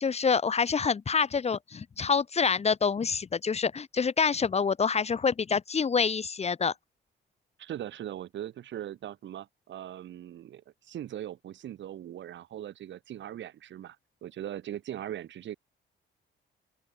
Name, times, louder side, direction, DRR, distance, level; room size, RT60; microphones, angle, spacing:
voice 1, 0.0-6.7, left 5 dB, 30° left, 0.9 m, -27 dB
voice 2, 7.6-14.0 14.2-15.6, right 11 dB, 70° right, 1.6 m, -40 dB
open air
cardioid pair, 90°, 20 cm